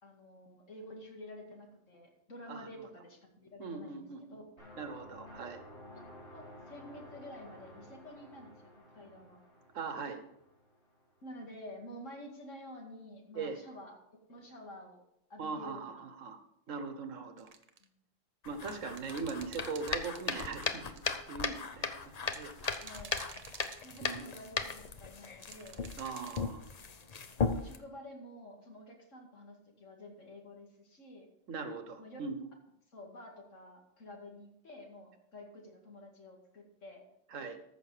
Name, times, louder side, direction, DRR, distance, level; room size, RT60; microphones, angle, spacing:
voice 1, 0.0-4.4 6.3-9.4 11.2-14.0 14.3-15.0 15.3-16.1 17.8-18.0 22.8-23.1 23.8-25.8 27.5-31.3 32.0-32.2 32.9-37.0, left 1 dB, 75° left, 1 dB, 2.6 m, -50 dB
voice 2, 2.5-2.9 3.6-4.4 4.8-5.6 9.7-10.2 13.3-13.6 15.4-16.4 16.7-17.5 18.4-22.9 24.0-24.3 26.0-26.6 31.5-32.5 37.3-37.6, right 4 dB, 80° right, 8 dB, 1.5 m, -41 dB
sound 1, 4.6-11.3, left 1 dB, 55° left, 5.5 m, -53 dB
sound 2, 17.4-17.8 18.6-21.1 22.3-24.3 25.5-26.4, right 5 dB, 35° right, 0.7 m, -50 dB
sound 3, 18.4-27.8, left 5 dB, 40° left, 0.7 m, -37 dB
14.0 x 6.5 x 4.9 m, 0.78 s
omnidirectional pair, 1.3 m